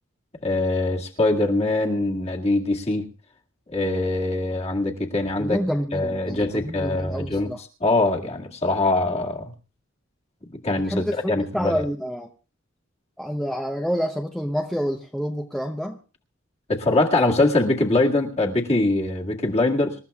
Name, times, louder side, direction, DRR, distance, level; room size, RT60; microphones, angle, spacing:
voice 1, 0.4-3.1 3.7-5.6 5.9-7.5 7.8-9.5 10.6-11.8 16.7-20.0, left 2 dB, 35° left, -1 dB, 2.0 m, -23 dB
voice 2, 5.4-7.6 10.8-12.3 13.2-16.0, equal, ahead, 2 dB, 0.8 m, -28 dB
26.5 x 13.5 x 2.4 m, 0.35 s
head